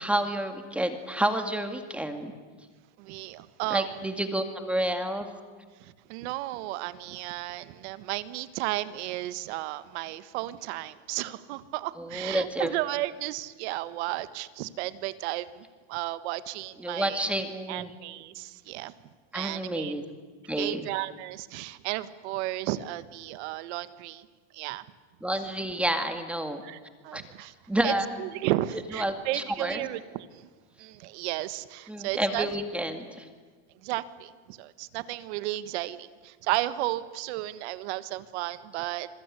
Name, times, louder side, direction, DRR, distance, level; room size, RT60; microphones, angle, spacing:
voice 1, 0.0-2.3 3.7-5.3 12.0-12.7 16.8-17.9 19.3-20.0 20.5-20.9 25.2-26.6 27.1-27.2 27.7-28.1 28.9-29.8 31.9-33.3, right 1 dB, 5° right, 7 dB, 2.0 m, -29 dB
voice 2, 3.0-3.9 5.8-17.2 17.7-18.9 19.3-19.9 20.6-24.3 24.5-24.8 26.6-27.5 27.8-27.9 28.2-30.5 30.8-32.5 33.8-39.1, right 16 dB, 85° right, 14 dB, 1.6 m, -33 dB
27.0 x 22.5 x 9.9 m, 1.5 s
cardioid pair, 175°, 33 cm